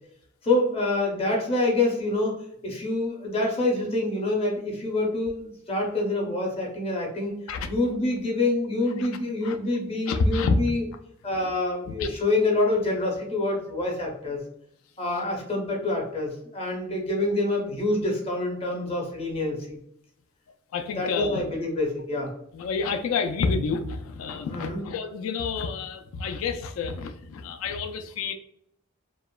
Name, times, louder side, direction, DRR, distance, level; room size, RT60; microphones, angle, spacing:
voice 1, 0.4-7.3 7.7-10.8 11.2-14.4 15.0-19.8 21.0-22.3 24.5-24.8, left 2 dB, 30° left, -1 dB, 0.6 m, -26 dB
voice 2, 10.1-10.6 11.3-11.5 11.9-12.1 20.7-21.4 22.5-28.3, left 4 dB, 80° left, 7 dB, 0.3 m, -28 dB
2.9 x 2.1 x 2.2 m, 0.72 s
head